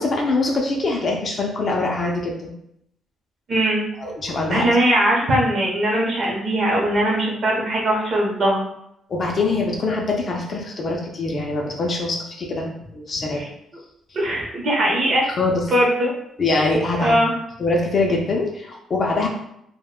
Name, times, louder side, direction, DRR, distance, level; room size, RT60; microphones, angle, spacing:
voice 1, 0.0-2.5 4.0-4.8 9.1-12.7 12.9-13.4 15.4-15.6 16.4-17.2 17.6-19.3, left 3 dB, 35° left, -1 dB, 0.4 m, -23 dB
voice 2, 3.5-3.8 4.5-8.6 13.4-13.5 14.1-15.2 15.7-16.1 16.5-16.7 17.0-17.3, right 1 dB, 40° right, -2 dB, 0.7 m, -20 dB
2.5 x 2.1 x 3.6 m, 0.76 s
cardioid pair, 170°, 0 cm